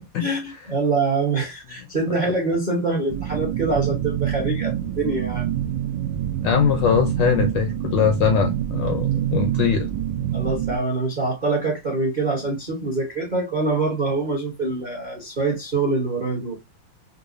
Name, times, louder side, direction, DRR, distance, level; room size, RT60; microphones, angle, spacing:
voice 1, 0.2-5.5 10.3-16.6, right 3 dB, 40° right, 0.7 m, -24 dB
sound 1, 3.1-10.8, right 11 dB, 75° right, 1.2 m, -26 dB
voice 2, 6.4-9.9, left 8 dB, 75° left, 1.0 m, -21 dB
5.2 x 2.0 x 2.5 m
omnidirectional pair, 2.4 m